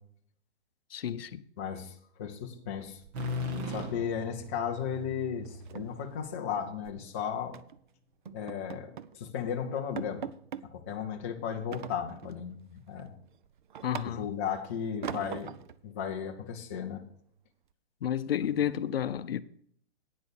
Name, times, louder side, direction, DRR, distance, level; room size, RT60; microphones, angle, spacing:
voice 1, 0.9-1.4 13.8-14.3 18.0-19.4, left 10 dB, 60° left, 0.7 m, -31 dB
voice 2, 1.6-1.9 2.2-3.0 3.7-7.6 8.3-10.3 10.7-13.2 14.1-15.6 15.8-17.0, left 8 dB, 15° left, 0.5 m, -35 dB
sound 1, 2.8-3.6 3.9-4.1 4.4-4.7 4.9-5.0 5.4-7.0 7.5-7.8 8.3-9.2 9.5-9.6 10.0-10.7 11.7-12.4 12.9-14.5 15.0-15.8, right 9 dB, 45° right, 0.5 m, -42 dB
sound 2, 3.1-6.9, left 2 dB, 15° right, 0.8 m, -38 dB
9.3 x 6.3 x 6.9 m
hypercardioid pair, 165°, 33 cm